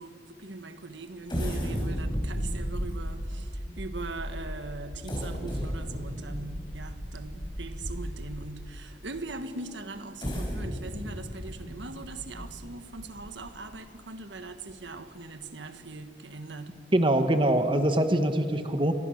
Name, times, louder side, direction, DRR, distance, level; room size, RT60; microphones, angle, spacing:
voice 1, 0.0-16.9, right 3 dB, 90° right, 1.5 m, -41 dB
Pulse laser, 1.3-8.4 9.0-9.1 10.0-13.5 14.0-14.1 14.5-14.7, equal, 25° left, 6.2 m, -34 dB
voice 2, 16.9-18.9, right 1 dB, 30° right, 1.4 m, -23 dB
29.5 x 24.0 x 6.5 m
head